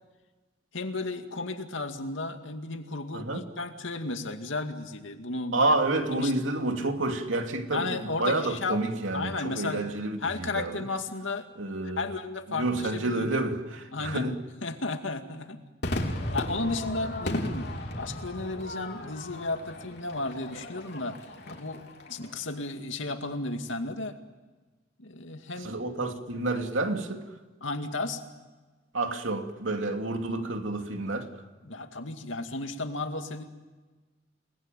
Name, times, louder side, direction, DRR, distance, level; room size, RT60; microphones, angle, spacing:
voice 1, 0.7-5.7 6.1-6.3 7.7-8.8 9.1-9.8 10.2-11.5 12.0-13.4 13.9-14.3 14.6-15.6 16.3-17.7 18.0-21.2 21.5-24.1 25.0-25.8 27.6-28.2 31.6-33.4, left 3 dB, 80° left, 2.4 m, -34 dB
voice 2, 3.1-3.4 5.5-10.9 11.6-12.1 12.5-14.4 25.6-27.2 28.9-31.3, right 2 dB, 80° right, 2.7 m, -29 dB
Crowd / Fireworks, 15.8-22.4, left 1 dB, 55° left, 3.4 m, -35 dB
29.5 x 20.5 x 9.2 m
head